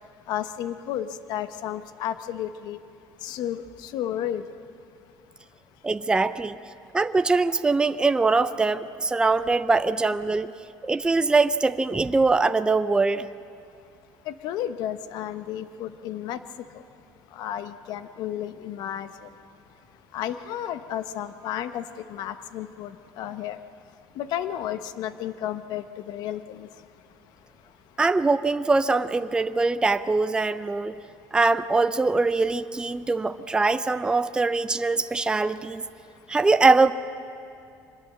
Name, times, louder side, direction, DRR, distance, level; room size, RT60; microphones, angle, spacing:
voice 1, 0.3-2.8 3.2-3.6 3.9-4.4 14.3-16.4 17.4-19.1 20.1-21.8 22.1-22.9 23.2-23.6 24.2-26.7, left 11 dB, 65° left, 11 dB, 1.0 m, -32 dB
voice 2, 5.8-6.6 6.9-10.5 10.8-13.3 28.0-31.0 31.3-35.9 36.3-36.9, right 3 dB, 10° right, 11 dB, 0.6 m, -22 dB
24.5 x 20.5 x 7.6 m, 2.6 s
cardioid pair, 120°, 7 cm